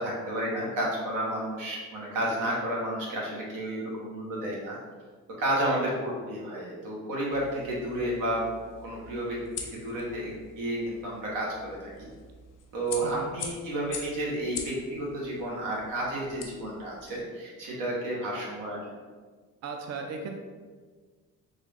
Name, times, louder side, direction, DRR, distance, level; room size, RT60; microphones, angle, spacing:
voice 1, 0.0-4.8 5.4-8.4 8.8-9.4 9.7-12.1 12.7-18.8, right 1 dB, 85° right, -4 dB, 1.2 m, -31 dB
sound 1, 7.3-17.2, left 5 dB, 80° left, 0.7 m, -44 dB
voice 2, 13.0-13.3 19.6-20.3, right 4 dB, 55° right, 3 dB, 0.5 m, -36 dB
3.7 x 2.5 x 3.3 m, 1.5 s
cardioid pair, 100°, 31 cm